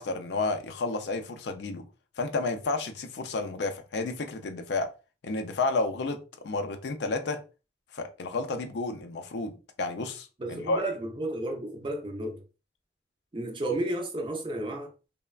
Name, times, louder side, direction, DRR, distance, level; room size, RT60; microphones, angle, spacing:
voice 1, 0.0-1.8 2.2-4.9 5.2-7.4 7.9-10.8, left 3 dB, 65° left, 0.4 m, -31 dB
voice 2, 10.4-12.4 13.3-14.9, right 1 dB, 30° right, 0.5 m, -32 dB
3.2 x 2.1 x 2.3 m
head